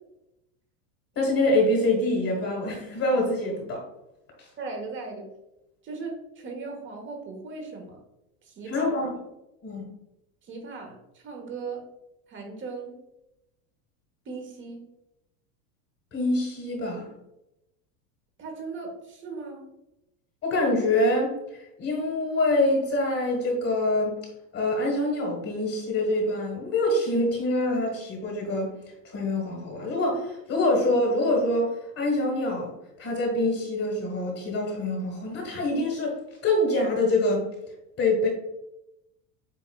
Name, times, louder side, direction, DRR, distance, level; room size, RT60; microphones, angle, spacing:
voice 1, 1.1-3.8 8.7-9.2 9.6-9.8 16.1-17.1 20.4-21.3 21.8-24.2 24.5-28.7 29.0-32.7 33.0-36.1 36.4-37.5 38.0-38.3, left 1 dB, 30° left, 0 dB, 1.5 m, -25 dB
voice 2, 4.6-5.3 5.8-8.0 8.4-8.9 10.4-11.8 12.3-12.9 14.2-14.9 18.4-19.7, right 4 dB, 25° right, 2 dB, 1.3 m, -38 dB
7.8 x 2.7 x 2.3 m, 0.90 s
supercardioid pair, 130°, 43 cm